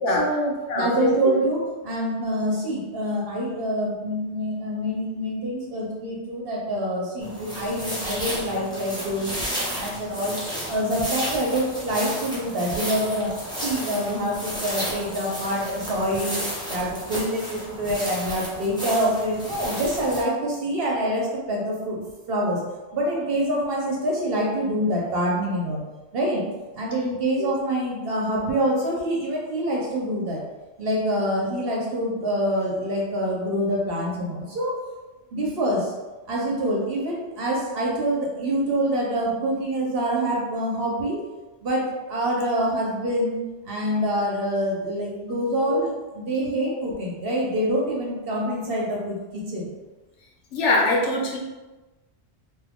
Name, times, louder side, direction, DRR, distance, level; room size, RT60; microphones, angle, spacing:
voice 1, 0.1-10.4 10.7-16.4 16.7-22.6 22.9-25.8 26.1-26.4 26.7-30.4 30.8-34.8 35.3-35.9 36.3-41.2 41.6-49.7, right 1 dB, 60° right, -3 dB, 0.9 m, -26 dB
voice 2, 0.7-1.1 27.4-27.5 45.7-45.8 50.5-51.4, left 2 dB, 85° left, -2 dB, 1.0 m, -22 dB
sound 1, 7.2-20.2, equal, 5° left, 0.6 m, -32 dB
2.9 x 2.4 x 3.5 m, 1.1 s
omnidirectional pair, 1.2 m